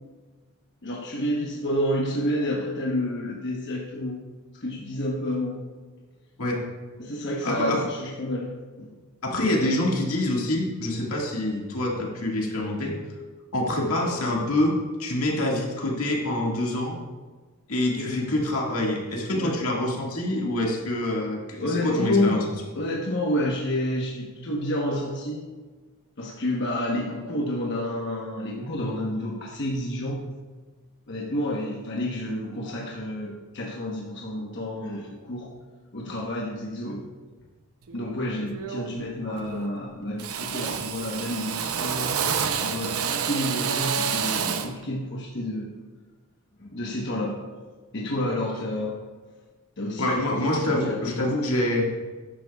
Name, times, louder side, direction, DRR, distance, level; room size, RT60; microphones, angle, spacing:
voice 1, 0.8-4.2 4.6-5.6 7.0-8.9 17.9-18.3 19.3-19.5 21.6-22.5 22.7-25.5 26.2-30.2 31.1-35.5 35.9-37.0 37.9-42.2 42.6-45.7 46.6-47.4 47.9-49.0 49.8-51.4, left 1 dB, 55° left, -3 dB, 1.1 m, -29 dB
voice 2, 7.4-7.8 9.2-12.9 13.5-17.0 17.7-22.4 50.0-51.9, left 1 dB, 85° left, -1 dB, 1.9 m, -26 dB
Drill, 37.9-38.1 38.5-39.0 39.3-39.8 40.2-44.8, right 7 dB, 80° right, 0.7 m, -29 dB
12.0 x 10.0 x 2.4 m, 1.3 s
head